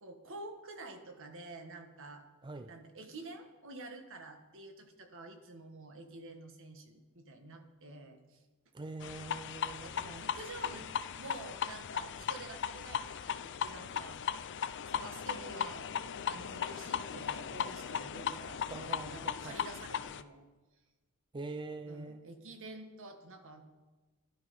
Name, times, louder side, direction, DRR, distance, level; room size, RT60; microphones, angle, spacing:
voice 1, 0.0-2.2 2.6-8.4 9.7-14.2 14.9-20.5 21.9-23.6, right 2 dB, 60° right, 5 dB, 1.6 m, -49 dB
voice 2, 8.7-9.9 18.7-19.6 21.3-22.2, right 3 dB, 20° right, 8 dB, 0.4 m, -43 dB
sound 1, 9.0-20.2, left 8 dB, 55° left, 0.5 m, -37 dB
12.0 x 11.5 x 5.4 m, 1.2 s
head